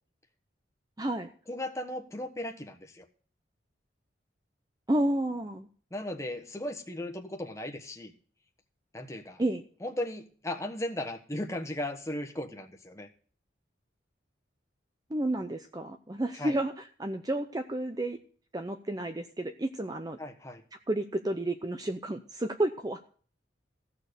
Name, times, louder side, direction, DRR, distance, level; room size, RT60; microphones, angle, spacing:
voice 1, 1.0-1.3 4.9-5.7 9.4-9.6 15.1-18.2 18.5-20.2 20.9-23.0, right 1 dB, 20° right, 7 dB, 0.6 m, -31 dB
voice 2, 1.5-3.0 5.9-8.1 8.9-9.4 9.8-13.1 16.3-16.5 20.2-20.6, left 1 dB, 15° left, 5 dB, 1.2 m, -36 dB
15.0 x 6.7 x 6.7 m, 0.44 s
head